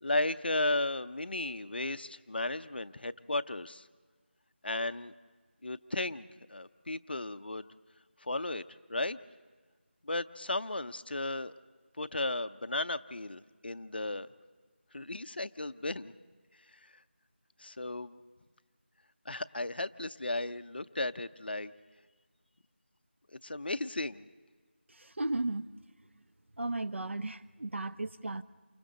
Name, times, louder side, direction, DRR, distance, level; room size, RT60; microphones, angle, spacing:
voice 1, 0.0-3.9 4.6-5.1 5.6-7.7 8.2-8.6 8.9-9.2 10.0-11.5 12.0-14.3 14.9-16.1 16.7-16.9 17.6-18.2 19.3-21.7 23.3-24.3, left 2 dB, 55° left, 0.6 m, -35 dB
voice 2, 25.2-25.7 26.6-28.4, right 2 dB, 80° right, 0.8 m, -34 dB
28.5 x 25.0 x 3.9 m
figure-of-eight pair, 175°, 6 cm